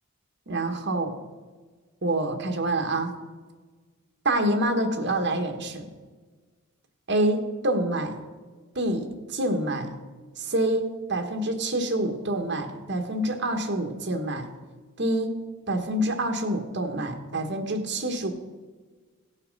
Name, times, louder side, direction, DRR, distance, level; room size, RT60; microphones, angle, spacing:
voice 1, 0.5-1.2 2.0-3.1 4.2-5.9 7.1-8.2 8.7-9.9 10.4-14.5 15.0-15.4 15.7-18.3, right 1 dB, 50° right, 4 dB, 1.3 m, -27 dB
17.0 x 5.7 x 5.3 m, 1.4 s
head